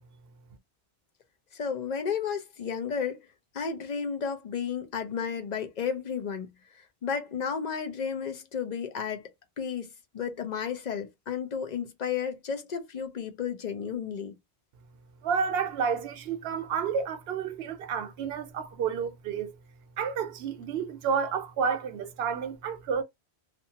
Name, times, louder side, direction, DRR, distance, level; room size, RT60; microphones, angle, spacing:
voice 1, 1.5-3.2 3.5-6.5 7.0-9.2 9.6-9.9 10.1-14.3, left 6 dB, 50° left, 0.6 m, -32 dB
voice 2, 15.2-19.6 20.0-23.0, right 6 dB, 70° right, 0.8 m, -30 dB
2.6 x 2.3 x 2.7 m
omnidirectional pair, 1.1 m